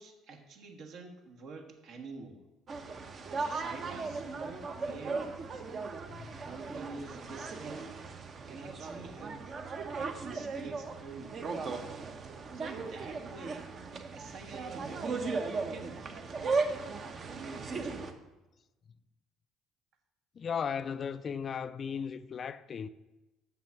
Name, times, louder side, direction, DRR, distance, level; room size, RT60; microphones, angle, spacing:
voice 1, 0.0-2.4 3.4-5.4 6.4-8.0 8.5-9.4 9.8-11.4 12.5-13.7 14.1-15.3 15.7-18.0, right 4 dB, 65° right, 1.4 m, -47 dB
sound 1, 2.7-18.1, right 4 dB, 50° right, 0.9 m, -37 dB
voice 2, 6.1-6.5 20.4-22.9, left 7 dB, 45° left, 0.3 m, -36 dB
7.0 x 6.0 x 5.8 m
hypercardioid pair, 65°, 0 cm